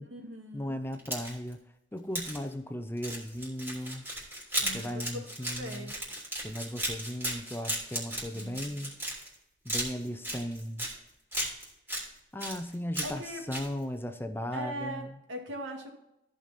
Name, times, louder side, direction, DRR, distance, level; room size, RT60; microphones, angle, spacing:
voice 1, 0.0-0.8 4.6-5.0 5.4-5.9 8.3-8.7 13.0-13.4 14.5-15.9, right 1 dB, 85° right, 2 dB, 2.2 m, -40 dB
voice 2, 0.5-1.6 1.9-4.0 4.7-5.9 6.4-8.9 9.6-10.9 12.3-15.1, equal, 10° left, 8 dB, 0.6 m, -37 dB
sound 1, 0.9-1.5 2.1-2.4 3.0-9.3 9.7-10.9 11.3-12.0 12.4-13.2 13.5-13.7, right 1 dB, 15° right, 3.3 m, -35 dB
14.5 x 5.2 x 4.2 m, 0.86 s
head